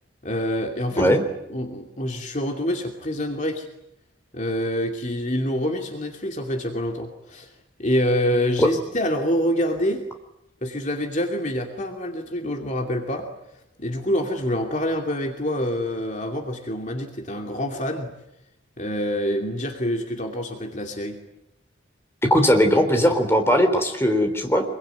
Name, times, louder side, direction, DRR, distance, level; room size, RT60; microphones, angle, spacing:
voice 1, 0.2-1.2 1.5-3.7 4.3-7.5 7.8-10.0 10.6-13.3 13.8-18.1 18.8-21.2, equal, 40° left, 3 dB, 2.6 m, -26 dB
voice 2, 22.3-24.6, equal, 15° left, 5 dB, 3.6 m, -19 dB
25.5 x 23.0 x 9.4 m, 0.84 s
head